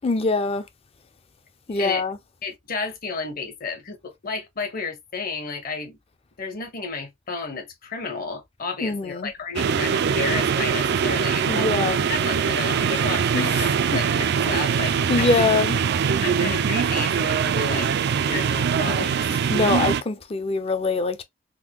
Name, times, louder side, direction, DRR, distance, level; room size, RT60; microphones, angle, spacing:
voice 1, 0.0-0.7 1.7-2.2 8.8-9.3 11.5-12.1 13.3-14.0 14.4-15.8 19.3-21.2, left 3 dB, 30° left, 0.5 m, -24 dB
voice 2, 2.4-6.0 6.4-11.7 12.1-15.7 16.2-17.9 18.2-19.7, left 4 dB, 50° left, 1.0 m, -32 dB
sound 1, 9.6-20.0, right 7 dB, 60° right, 0.3 m, -22 dB
3.7 x 2.2 x 2.9 m
head